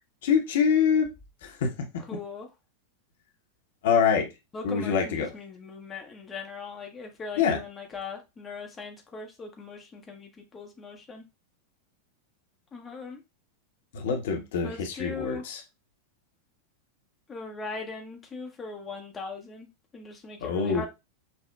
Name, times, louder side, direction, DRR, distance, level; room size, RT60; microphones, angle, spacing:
voice 1, 0.2-1.1 1.4-1.9 3.8-4.3 4.6-5.3 7.4-7.6 13.9-15.6 20.4-20.8, left 6 dB, 55° left, 3 dB, 0.7 m, -25 dB
voice 2, 2.1-2.5 4.5-11.3 12.7-13.2 14.6-15.4 17.3-20.9, left 4 dB, 20° left, 2 dB, 0.6 m, -40 dB
5.3 x 2.1 x 2.2 m, 0.24 s
figure-of-eight pair, 90°, 0 cm